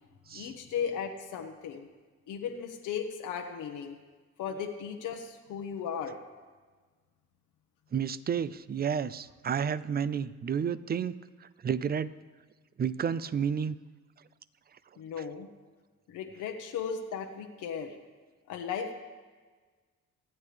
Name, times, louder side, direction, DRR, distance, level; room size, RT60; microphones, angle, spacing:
voice 1, 0.3-1.9 2.3-4.0 4.4-6.2 15.0-15.5 16.1-17.9 18.5-18.9, left 7 dB, 85° left, 3 dB, 1.1 m, -36 dB
voice 2, 7.9-11.1 11.4-12.2 12.8-13.8, right 7 dB, 30° right, 17 dB, 0.5 m, -31 dB
25.5 x 8.6 x 3.4 m, 1.4 s
cardioid pair, 90°, 30 cm